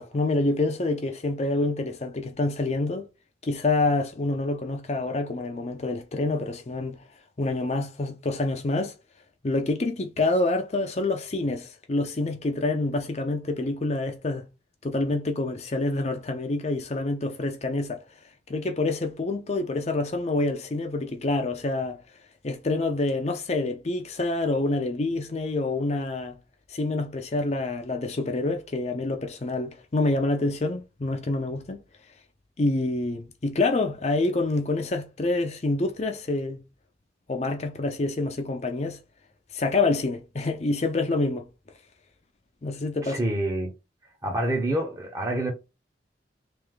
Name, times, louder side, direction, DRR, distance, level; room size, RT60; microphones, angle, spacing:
voice 1, 0.0-3.1 3.4-7.0 7.4-8.9 9.4-14.5 14.8-18.0 18.5-22.0 22.4-26.4 26.7-31.8 32.6-36.6 37.3-39.0 39.5-41.4 42.6-43.2, left 2 dB, 35° left, 0.5 m, -27 dB
voice 2, 43.0-43.7 44.2-45.5, right 1 dB, 20° right, 0.8 m, -27 dB
3.3 x 2.7 x 3.7 m
head